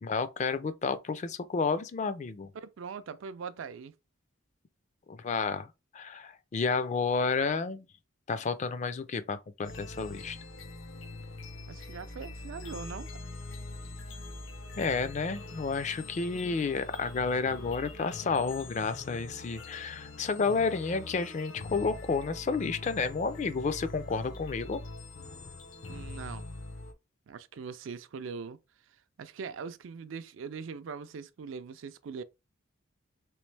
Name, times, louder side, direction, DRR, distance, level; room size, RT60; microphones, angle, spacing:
voice 1, 0.0-2.5 5.1-5.7 5.9-7.9 8.3-10.4 14.8-24.8, left 4 dB, 35° left, 0.4 m, -31 dB
voice 2, 2.6-3.9 11.7-13.1 25.9-26.5 27.3-28.6 29.2-32.2, right 5 dB, 70° right, 0.4 m, -41 dB
sound 1, 9.6-26.9, left 2 dB, 75° left, 0.7 m, -43 dB
3.3 x 3.1 x 3.2 m
head